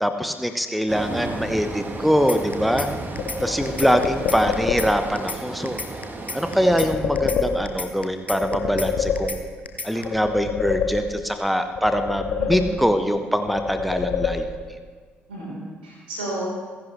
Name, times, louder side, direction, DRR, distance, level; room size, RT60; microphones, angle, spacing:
voice 1, 0.0-2.9 3.4-5.8 6.3-9.4 9.8-14.5, equal, ahead, 8 dB, 0.9 m, -23 dB
sound 1, 0.9-6.9, right 2 dB, 35° right, 1.6 m, -33 dB
sound 2, 2.3-2.9 3.2-3.4 3.7-4.9 5.2-5.4 5.7-6.9 7.2-7.4 7.7-8.9 9.2-9.4 9.7-10.0, left 3 dB, 90° left, 0.6 m, -32 dB
sound 3, 3.2-5.2 6.6-8.0 8.3-9.7 10.0-11.4 11.8-13.1 13.5-14.8, left 6 dB, 55° left, 1.1 m, -27 dB
voice 2, 9.9-10.4 12.4-12.7 15.3-16.5, right 2 dB, 80° right, -4 dB, 3.9 m, -33 dB
29.0 x 10.5 x 3.2 m, 1.5 s
figure-of-eight pair, 40°, 6 cm